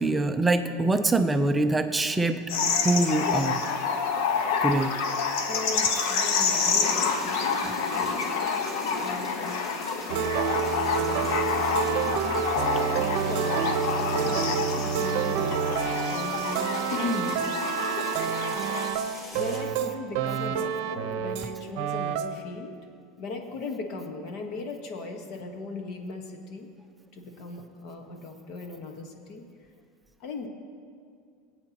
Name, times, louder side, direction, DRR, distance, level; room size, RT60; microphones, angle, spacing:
voice 1, 0.0-2.4 2.8-3.6 4.6-5.0 7.6-7.7, right 2 dB, 10° right, 7 dB, 0.5 m, -24 dB
sound 1, 2.5-18.9, left 5 dB, 65° left, 1.1 m, -28 dB
voice 2, 5.4-8.3 9.0-9.5 12.8-17.4 18.6-18.7 19.3-22.8 23.2-26.7 27.1-29.4 30.2-30.5, left 3 dB, 45° left, 4 dB, 1.3 m, -37 dB
sound 2, 6.0-19.6, equal, 20° left, 2.7 m, -44 dB
sound 3, 10.1-21.5 21.8-22.4, right 7 dB, 60° right, 0.8 m, -28 dB
21.0 x 8.7 x 2.9 m, 2.4 s
supercardioid pair, 160°, 0 cm